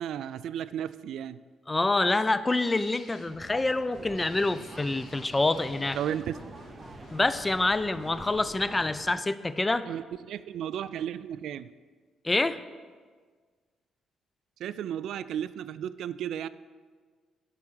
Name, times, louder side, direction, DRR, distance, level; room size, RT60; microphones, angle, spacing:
voice 1, 0.0-1.4 5.9-6.3 9.9-11.7 14.6-16.5, right 10 dB, 75° right, 16 dB, 0.3 m, -34 dB
voice 2, 1.7-6.0 7.1-9.9 12.2-12.6, left 2 dB, 20° left, 14 dB, 0.4 m, -26 dB
sound 1, 2.6-8.8, left 2 dB, 70° left, 3.1 m, -50 dB
sound 2, 3.9-9.2, right 3 dB, 30° right, 0.6 m, -47 dB
10.5 x 5.8 x 6.3 m, 1.5 s
cardioid pair, 90°, 0 cm